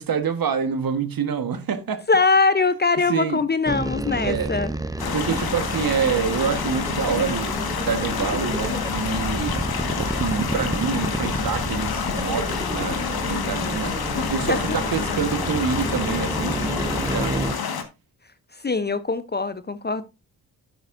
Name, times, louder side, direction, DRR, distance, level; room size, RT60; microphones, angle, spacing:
voice 1, 0.0-2.0 3.0-3.4 4.2-4.5 5.1-9.7 10.0-17.5, right 7 dB, 50° right, 1.5 m, -27 dB
voice 2, 2.1-4.7 14.1-14.8 18.6-20.1, left 4 dB, 25° left, 0.7 m, -22 dB
sound 1, 3.7-17.5, right 2 dB, 10° right, 0.8 m, -30 dB
sound 2, 5.0-17.8, left 6 dB, 55° left, 1.7 m, -28 dB
10.5 x 7.9 x 2.6 m
hypercardioid pair, 40°, 44 cm